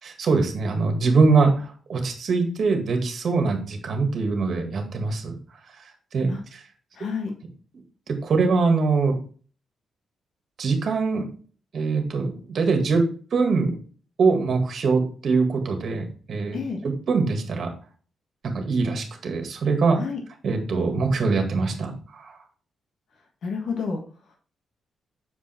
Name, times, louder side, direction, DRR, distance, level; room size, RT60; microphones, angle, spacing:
voice 1, 0.0-5.3 6.1-6.6 8.1-9.2 10.6-11.3 11.7-13.0 13.3-13.8 14.2-16.6 16.8-17.7 18.4-20.0 20.4-22.3, right 4 dB, 55° right, 4 dB, 1.9 m, -23 dB
voice 2, 6.9-7.3 16.5-16.8 19.9-20.2 23.4-24.0, left 5 dB, 65° left, 2 dB, 1.5 m, -29 dB
7.0 x 4.9 x 4.4 m, 0.41 s
cardioid pair, 130°, 0 cm